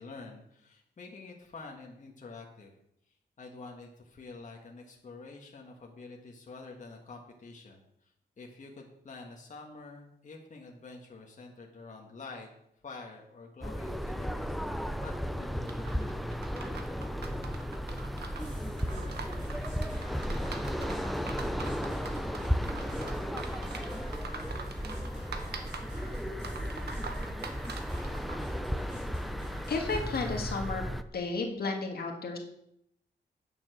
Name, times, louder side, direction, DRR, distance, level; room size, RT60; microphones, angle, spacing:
voice 1, 0.0-2.7 3.4-12.5 12.8-15.8, left 3 dB, 45° left, 0 dB, 1.6 m, -48 dB
sound 1, 13.6-31.0, equal, ahead, 0.5 m, -35 dB
sound 2, 15.7-28.5, right 5 dB, 65° right, 1.3 m, -44 dB
sound 3, 18.4-30.4, right 1 dB, 40° right, 3.9 m, -47 dB
voice 2, 29.7-30.9 31.1-32.4, left 3 dB, 60° left, 3 dB, 1.8 m, -32 dB
9.4 x 7.3 x 6.2 m, 0.77 s
wide cardioid pair, 125°, 18 cm